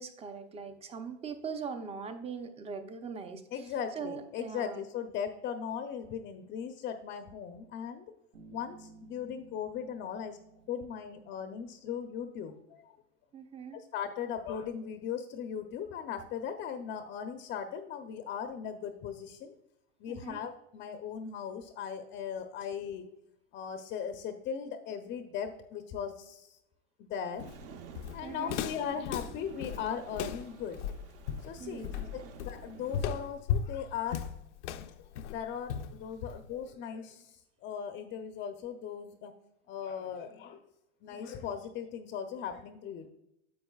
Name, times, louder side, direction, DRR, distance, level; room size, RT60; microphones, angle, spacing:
voice 1, 0.0-4.9 13.3-13.8 20.1-20.4 28.2-28.6 31.6-32.1, right 5 dB, 15° right, 8 dB, 0.7 m, -41 dB
voice 2, 3.5-8.0 8.5-10.4 10.7-12.9 13.7-19.5 20.0-23.1 23.5-26.6 27.0-27.5 28.1-30.8 31.4-31.9 32.1-34.3 35.0-39.3 39.7-40.6 41.0-43.1, left 7 dB, 30° left, 7 dB, 0.6 m, -38 dB
Bass guitar, 8.3-12.0, right 4 dB, 75° right, 2.4 m, -56 dB
Walk footsteps, 27.4-36.7, left 8 dB, 80° left, 0.7 m, -36 dB
sound 1, 27.4-33.2, right 7 dB, 40° right, 0.9 m, -50 dB
10.0 x 7.5 x 2.3 m, 0.84 s
supercardioid pair, 135°, 35 cm